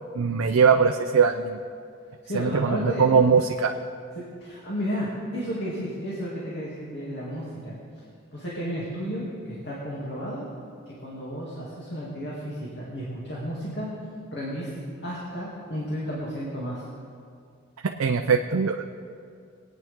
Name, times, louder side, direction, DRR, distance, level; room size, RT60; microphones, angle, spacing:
voice 1, 0.1-1.6 2.3-3.7 17.8-18.8, right 5 dB, 85° right, 4 dB, 0.5 m, -21 dB
voice 2, 2.2-3.1 4.1-7.7 8.3-10.5 10.9-13.9 14.3-14.7 15.0-16.8, equal, 55° left, -6 dB, 2.6 m, -33 dB
23.0 x 9.2 x 3.6 m, 2.3 s
head